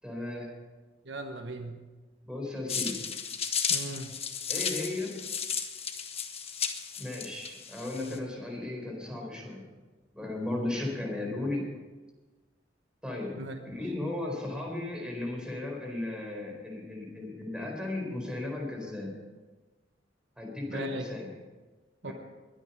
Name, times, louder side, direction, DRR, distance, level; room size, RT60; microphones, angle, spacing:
voice 1, 0.0-0.5 2.2-3.0 4.5-5.2 7.0-9.7 10.1-11.6 13.0-13.4 13.6-19.1 20.4-21.3 22.0-22.1, left 2 dB, 5° right, 0 dB, 4.0 m, -35 dB
voice 2, 1.0-1.8 3.7-4.1 8.1-8.2 13.4-13.6 20.7-21.1 22.0-22.1, right 2 dB, 70° right, 5 dB, 1.2 m, -38 dB
sound 1, 2.7-8.2, left 7 dB, 35° left, 1.2 m, -34 dB
21.5 x 9.2 x 5.5 m, 1.3 s
head